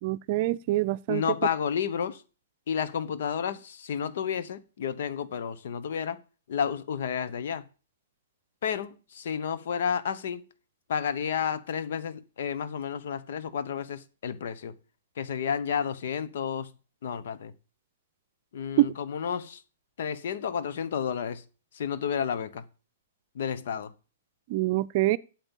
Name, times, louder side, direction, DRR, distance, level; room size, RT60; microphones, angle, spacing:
voice 1, 0.0-1.2 18.8-18.9 24.5-25.2, right 16 dB, 45° right, 0.5 m, -25 dB
voice 2, 1.1-2.2 2.7-6.2 6.5-7.6 8.6-10.5 10.9-14.7 15.2-16.7 17.0-17.5 18.5-19.6 20.0-21.4 21.7-22.6 23.3-23.9, left 7 dB, 60° left, 1.1 m, -31 dB
8.9 x 7.7 x 7.3 m
figure-of-eight pair, 115°, 0 cm